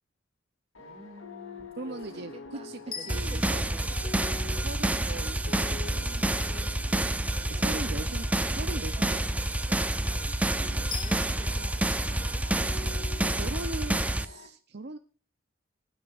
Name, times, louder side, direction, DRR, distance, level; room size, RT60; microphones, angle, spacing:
sound 1, 0.7-14.5, left 3 dB, 75° left, 3.0 m, -47 dB
voice 1, 0.8-2.2 2.5-4.4 8.8-9.3 9.7-13.4, right 1 dB, 30° right, 5 dB, 2.4 m, -50 dB
voice 2, 1.8-3.7 4.2-6.3 7.5-9.2 12.8-12.9 13.2-15.0, right 2 dB, 55° right, 9 dB, 0.8 m, -40 dB
sound 2, 2.9-5.1 10.9-11.7, left 5 dB, 20° left, 2.0 m, -42 dB
sound 3, 3.1-14.2, right 1 dB, 5° right, 0.6 m, -28 dB
25.5 x 9.5 x 2.6 m, 0.39 s
head